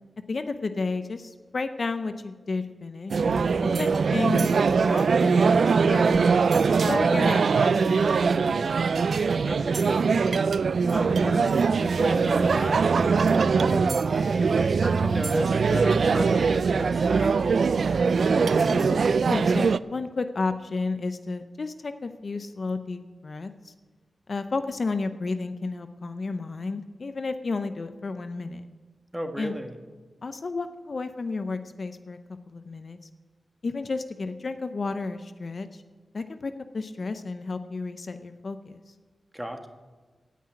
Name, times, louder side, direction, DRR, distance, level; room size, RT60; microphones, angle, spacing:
voice 1, 0.3-6.3 6.8-8.5 18.1-23.7 24.3-28.7 29.4-29.5 30.2-32.2 32.5-33.0 33.6-35.8 36.1-38.8, left 3 dB, 55° left, 9 dB, 0.7 m, -32 dB
sound 1, 3.1-19.8, right 5 dB, 70° right, 0.3 m, -22 dB
voice 2, 9.4-10.4 10.9-17.6 29.1-29.7 39.3-39.7, equal, 10° right, 5 dB, 1.5 m, -34 dB
sound 2, 14.5-19.7, equal, 30° right, 1.8 m, -45 dB
16.5 x 5.8 x 8.6 m, 1.4 s
cardioid pair, 65°, 0 cm